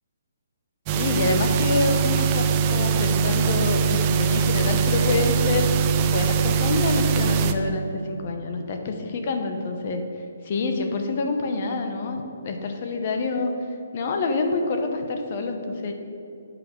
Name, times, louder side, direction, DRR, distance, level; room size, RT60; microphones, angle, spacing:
voice 1, 0.9-5.7 6.0-10.0 10.4-13.5 13.9-15.9, left 3 dB, 35° left, 4 dB, 0.9 m, -27 dB
sound 1, 0.9-7.5, right 6 dB, 20° right, 0.4 m, -22 dB
9.3 x 5.8 x 5.3 m, 2.7 s
hypercardioid pair, 170°, 0 cm